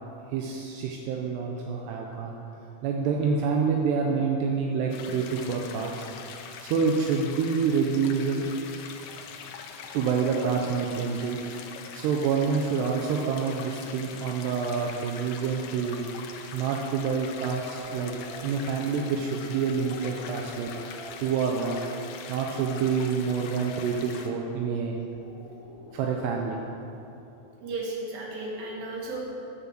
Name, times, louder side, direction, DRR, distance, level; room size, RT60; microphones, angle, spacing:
voice 1, 0.3-2.3 2.8-6.1 6.6-8.5 9.9-11.4 11.9-16.1 16.5-18.1 18.4-20.7 21.2-25.0 25.9-26.6, right 5 dB, 80° right, 0 dB, 2.5 m, -27 dB
sound 1, 4.9-24.3, left 6 dB, 80° left, 2.4 m, -43 dB
sound 2, 17.8-18.4 19.2-22.1 22.5-24.0 25.2-26.5, left 1 dB, 55° left, 2.6 m, -47 dB
voice 2, 27.6-29.2, right 2 dB, 55° right, -3 dB, 3.3 m, -34 dB
10.0 x 9.4 x 7.5 m, 2.9 s
omnidirectional pair, 5.6 m